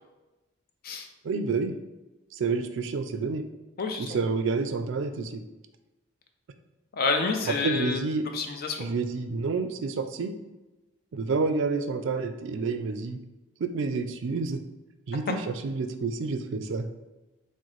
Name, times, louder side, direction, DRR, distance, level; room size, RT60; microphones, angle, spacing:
voice 1, 1.2-1.7 2.4-3.4 4.0-5.4 7.6-8.2 8.8-10.3 11.1-13.2 13.6-14.6 15.1-16.9, right 4 dB, 65° right, 9 dB, 0.4 m, -29 dB
voice 2, 3.8-4.2 6.9-8.0 8.3-8.8, left 4 dB, 50° left, 4 dB, 0.5 m, -28 dB
6.2 x 2.1 x 3.0 m, 1.1 s
head